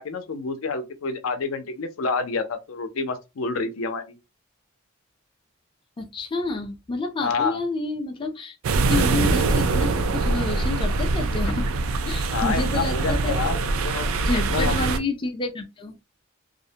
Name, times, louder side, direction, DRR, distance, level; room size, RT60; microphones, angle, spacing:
voice 1, 0.0-4.2 7.2-7.6 12.3-13.6 13.8-14.1 14.5-14.9, left 4 dB, 80° left, 0.5 m, -28 dB
voice 2, 6.0-11.7 12.1-13.5 14.2-16.0, left 3 dB, 25° left, 0.4 m, -29 dB
sound 1, 8.6-15.0, right 3 dB, 80° right, 0.4 m, -23 dB
2.5 x 2.0 x 2.7 m
head